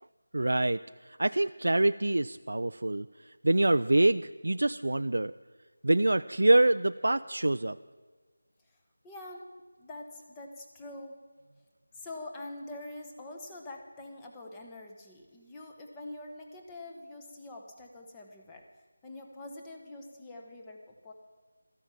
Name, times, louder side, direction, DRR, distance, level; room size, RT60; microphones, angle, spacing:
voice 1, 0.3-3.1 3.4-5.3 5.8-7.8, right 2 dB, 80° right, 11 dB, 0.3 m, -25 dB
voice 2, 9.0-9.5 9.8-11.2 11.9-18.7 19.0-21.1, left 2 dB, 10° left, 1 dB, 1.0 m, -45 dB
13.5 x 10.5 x 7.4 m, 1.4 s
figure-of-eight pair, 175°, 0 cm